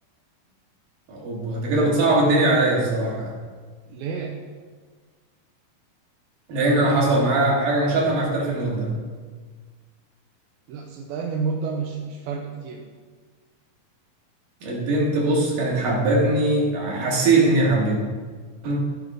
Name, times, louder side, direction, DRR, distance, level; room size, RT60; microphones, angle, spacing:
voice 1, 1.1-3.3 6.5-8.9 14.6-18.0 18.6-18.8, right 2 dB, 65° right, -4 dB, 3.7 m, -21 dB
voice 2, 3.9-4.4 10.7-12.8, right 5 dB, 85° right, 0 dB, 2.7 m, -30 dB
16.5 x 5.9 x 3.7 m, 1.5 s
omnidirectional pair, 4.1 m